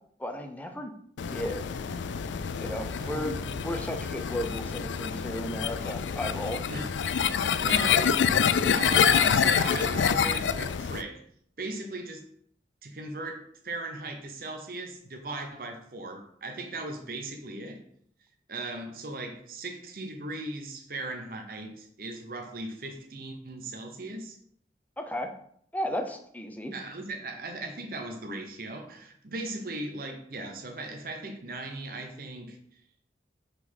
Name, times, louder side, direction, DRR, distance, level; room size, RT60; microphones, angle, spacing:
voice 1, 0.2-0.9 1.3-1.6 2.6-3.3 3.6-6.6 25.0-25.3 25.7-26.7, equal, 10° left, 5 dB, 0.7 m, -34 dB
sound 1, 1.2-11.0, left 7 dB, 90° left, 0.4 m, -26 dB
voice 2, 3.0-3.7 6.7-6.9 7.4-11.2 11.6-12.3 12.8-17.8 18.5-24.4 26.7-32.6, right 2 dB, 50° right, 4 dB, 0.8 m, -38 dB
5.7 x 4.1 x 5.4 m, 0.65 s
head